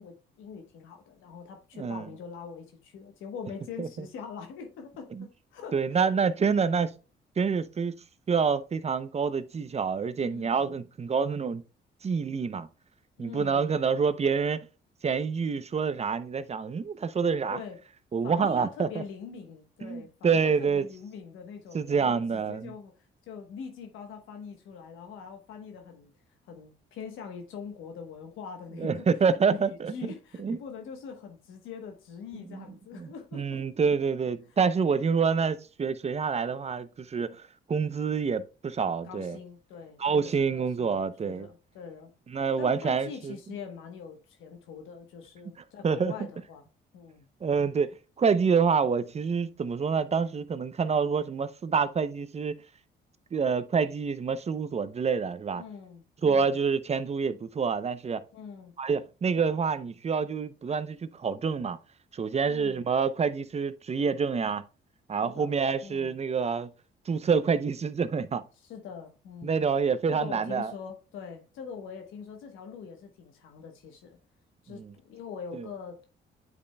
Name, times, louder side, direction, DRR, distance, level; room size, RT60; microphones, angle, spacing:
voice 1, 0.0-6.1 10.2-10.8 13.2-13.7 17.5-17.8 18.2-22.9 23.3-26.1 26.5-29.1 29.5-33.6 39.0-41.0 41.2-42.1 42.6-46.6 46.9-47.3 55.5-56.6 58.3-58.7 62.4-62.9 65.2-66.2 68.6-69.6 70.1-74.2 74.6-76.0, left 6 dB, 90° left, 1.1 m, -43 dB
voice 2, 5.7-6.9 7.4-7.9 8.3-11.6 12.0-12.7 13.2-14.6 15.0-17.6 18.1-18.9 19.8-20.8 21.7-22.7 28.8-30.1 30.4-30.6 32.3-32.6 33.0-37.4 37.7-39.4 40.0-41.5 42.3-43.3 45.8-46.1 47.4-47.9 48.2-52.6 53.3-55.6 56.2-58.2 58.8-61.8 62.1-64.6 65.1-66.7 67.1-68.4 69.4-70.7 74.7-74.9 75.5-75.7, right 5 dB, 35° right, 0.6 m, -27 dB
9.5 x 5.2 x 2.2 m
cardioid pair, 90°, 20 cm